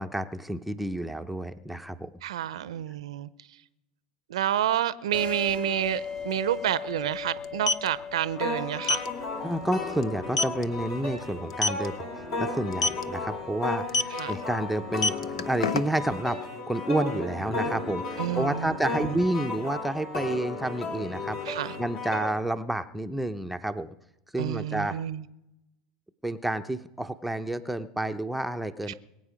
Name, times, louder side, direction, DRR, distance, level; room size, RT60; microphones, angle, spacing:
voice 1, 0.0-2.1 9.4-12.1 12.4-23.9 24.3-25.0 26.2-28.9, right 1 dB, ahead, 0.7 m, -30 dB
voice 2, 2.2-3.3 4.3-9.1 14.2-14.3 17.6-17.7 18.2-18.7 21.5-21.7 24.4-25.2 28.9-29.0, right 11 dB, 75° right, 0.6 m, -29 dB
sound 1, 5.1-12.3, left 6 dB, 35° left, 1.3 m, -39 dB
sound 2, 5.8-5.9 6.2-6.4 7.4-7.9 8.8-9.1 9.5-9.7 10.0-10.1 10.4-10.6 11.5-11.9 12.7-13.0 13.9-14.2 14.8-16.1, left 3 dB, 85° left, 0.7 m, -25 dB
sound 3, 8.3-22.3, left 3 dB, 55° left, 4.0 m, -34 dB
22.5 x 8.1 x 5.1 m
hypercardioid pair, 95°, 3 cm